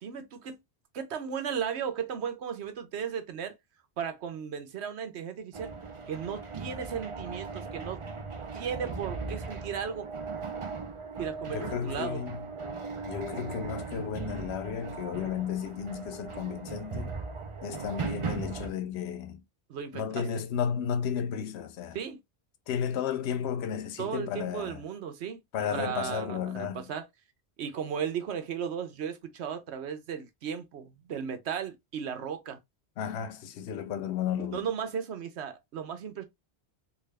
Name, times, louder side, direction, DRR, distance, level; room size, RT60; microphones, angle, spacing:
voice 1, 0.0-0.6 0.9-3.5 4.0-5.7 6.1-8.0 8.5-10.1 11.2-12.3 19.7-20.3 21.9-22.2 24.0-25.4 25.7-27.1 27.6-32.6 34.5-36.2, right 7 dB, 80° right, 1.0 m, -35 dB
sound 1, 5.5-18.7, right 4 dB, 40° right, 0.5 m, -38 dB
voice 2, 11.5-12.4 13.1-17.1 17.6-19.4 19.9-22.0 22.7-24.8 25.5-26.8 33.0-34.7, left 8 dB, 75° left, 0.8 m, -33 dB
3.6 x 2.4 x 3.3 m
omnidirectional pair, 1.1 m